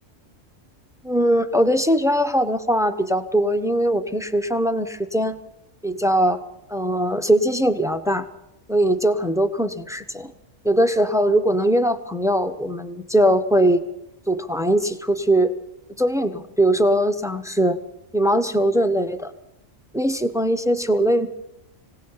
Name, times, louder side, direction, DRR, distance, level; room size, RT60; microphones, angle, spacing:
voice 1, 1.0-5.3 5.8-6.4 6.7-8.2 8.7-10.3 10.6-13.8 14.3-15.6 16.0-17.8 18.1-19.3 19.9-21.3, right 1 dB, 5° right, 10 dB, 0.9 m, -20 dB
26.5 x 17.5 x 5.7 m, 0.85 s
omnidirectional pair, 1.3 m